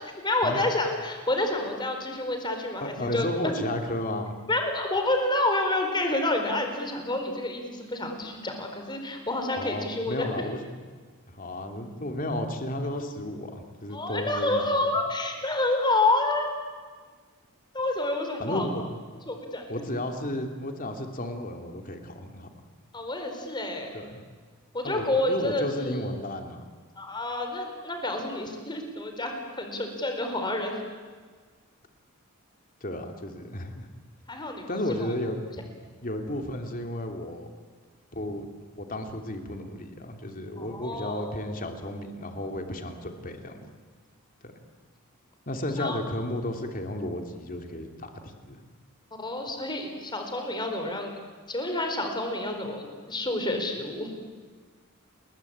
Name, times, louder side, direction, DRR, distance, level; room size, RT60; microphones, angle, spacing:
voice 1, 0.2-3.6 4.5-10.5 13.9-16.5 17.7-18.7 19.3-19.8 22.9-23.9 24.7-26.0 27.0-30.8 34.3-35.1 40.6-41.4 45.8-46.0 49.2-51.1 51.5-54.1, left 2 dB, 20° left, 4 dB, 4.5 m, -29 dB
voice 2, 2.8-4.3 9.6-10.8 11.3-14.9 18.4-18.8 19.7-22.5 23.9-24.2 24.8-26.7 32.8-33.9 34.7-35.4 36.0-37.5 38.1-38.5 38.8-43.7 44.4-44.5 45.5-48.6, left 1 dB, 40° left, 4 dB, 3.0 m, -33 dB
29.5 x 21.5 x 8.8 m, 1.5 s
head